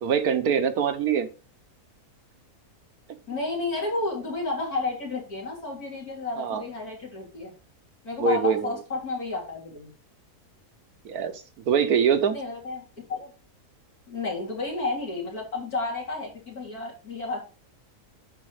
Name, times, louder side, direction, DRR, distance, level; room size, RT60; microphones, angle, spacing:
voice 1, 0.0-1.3 6.4-6.6 8.2-8.7 11.0-11.3 11.7-12.4, right 7 dB, 80° right, 9 dB, 1.5 m, -23 dB
voice 2, 3.3-7.5 8.0-9.9 12.3-13.3 14.1-17.4, left 3 dB, 75° left, -2 dB, 3.9 m, -31 dB
10.5 x 4.2 x 4.9 m, 0.35 s
omnidirectional pair, 1.6 m